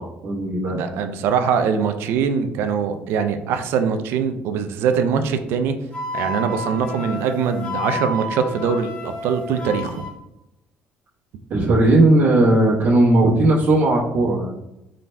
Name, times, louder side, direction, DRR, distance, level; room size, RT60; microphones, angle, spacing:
voice 1, 0.0-0.8 11.5-14.5, right 2 dB, 50° right, -7 dB, 1.1 m, -17 dB
voice 2, 0.7-5.8 6.1-10.1, right 6 dB, 75° right, 8 dB, 0.4 m, -22 dB
Wind instrument woodwind instrument, 5.9-10.1, left 1 dB, 20° left, 1.2 m, -30 dB
4.2 x 3.8 x 2.2 m, 0.89 s
cardioid pair, 140°, 4 cm